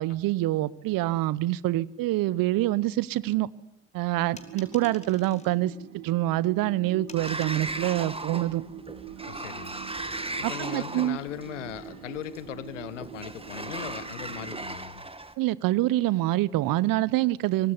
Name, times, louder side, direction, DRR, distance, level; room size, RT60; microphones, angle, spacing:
voice 1, 0.0-3.5 3.9-5.7 6.0-8.6 10.4-11.2 15.4-17.7, right 16 dB, 65° right, 0.9 m, -26 dB
sound 1, 4.3-14.7, right 10 dB, 90° right, 1.4 m, -44 dB
sound 2, 4.4-5.6 7.1-7.6, left 2 dB, 20° left, 5.4 m, -49 dB
Sliding door, 7.2-15.3, right 2 dB, 15° right, 2.2 m, -37 dB
voice 2, 9.3-9.7 10.4-15.0, left 11 dB, 90° left, 1.2 m, -39 dB
24.5 x 19.5 x 9.8 m
hypercardioid pair, 40°, 36 cm